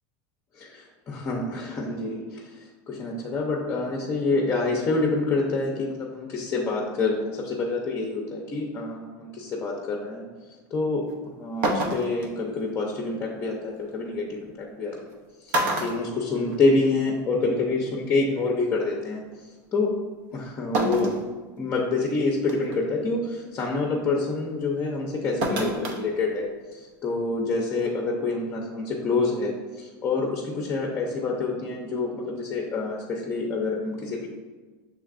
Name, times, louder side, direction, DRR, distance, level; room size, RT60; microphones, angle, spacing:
voice 1, 0.6-10.3 10.7-14.9 15.4-19.9 20.3-21.2 21.6-34.3, left 3 dB, 25° left, -1 dB, 0.6 m, -27 dB
sound 1, 11.1-11.2 11.6-12.3 13.9-14.0 15.0-15.1 15.5-16.9 17.2-17.3 18.6-18.7 20.7-21.2 21.8-21.9 22.5-22.8 25.4-26.0 26.3-26.4, right 1 dB, 70° right, 0.7 m, -27 dB
6.3 x 3.3 x 2.4 m, 1.4 s
supercardioid pair, 145°, 11 cm